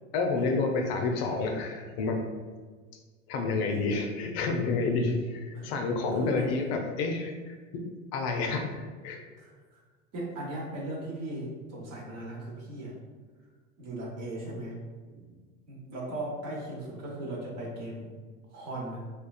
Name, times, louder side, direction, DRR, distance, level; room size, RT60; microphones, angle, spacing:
voice 1, 0.1-2.2 3.3-7.8 8.1-9.2, left 3 dB, 55° left, 3 dB, 0.5 m, -29 dB
voice 2, 6.1-6.5 9.4-9.8 10.1-12.9 13.8-14.8 15.1-15.3 15.7-18.1 18.5-19.0, right 1 dB, 40° right, -3 dB, 1.0 m, -37 dB
3.6 x 2.3 x 2.3 m, 1.4 s
hypercardioid pair, 80°, 38 cm